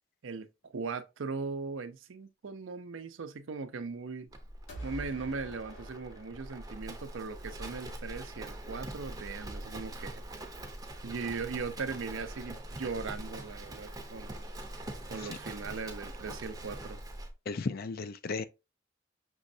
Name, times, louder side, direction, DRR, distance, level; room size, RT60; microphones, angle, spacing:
voice 1, 0.7-4.3 4.8-10.2 11.0-14.4 15.1-17.0, right 4 dB, 80° right, 0.6 m, -39 dB
Livestock farm animals working animals, 4.3-17.3, right 1 dB, 20° right, 0.6 m, -43 dB
sound 1, 4.7-7.6, right 1 dB, 85° left, 2.2 m, -47 dB
voice 2, 17.5-18.5, left 4 dB, 50° left, 0.4 m, -35 dB
6.1 x 3.1 x 2.6 m
head